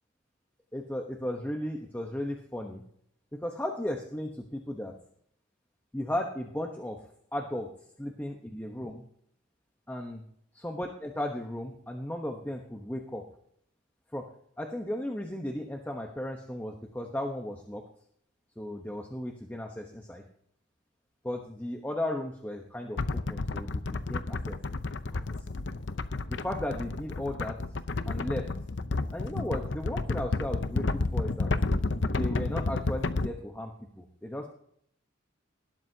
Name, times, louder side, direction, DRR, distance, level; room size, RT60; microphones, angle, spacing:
voice 1, 0.7-2.8 3.4-4.9 5.9-7.0 7.3-7.7 8.0-9.0 9.9-10.2 10.5-13.2 14.1-14.2 14.6-17.8 18.6-20.2 21.2-24.6 25.1-25.3 26.3-27.6 28.1-28.5 29.1-31.5 32.2-34.5, left 1 dB, 10° left, 1 dB, 0.9 m, -35 dB
sound 1, 23.0-33.3, left 3 dB, 65° left, 0.7 m, -31 dB
19.0 x 12.5 x 2.8 m, 0.67 s
head